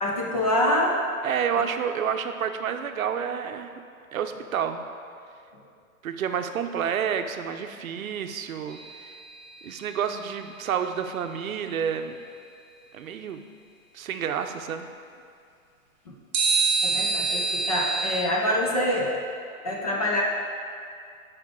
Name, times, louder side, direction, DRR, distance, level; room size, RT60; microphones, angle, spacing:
voice 1, 0.0-1.0 16.8-19.2 19.6-20.2, left 1 dB, 25° left, -2 dB, 0.6 m, -25 dB
voice 2, 1.2-3.8 4.1-4.8 6.0-9.2 9.6-12.2 12.9-13.4 13.9-14.9, right 8 dB, 70° right, 7 dB, 0.7 m, -29 dB
sound 1, 8.7-9.9 16.3-18.2, right 4 dB, 25° right, 0.9 m, -26 dB
10.5 x 5.2 x 3.7 m, 2.3 s
hypercardioid pair, 170°, 43 cm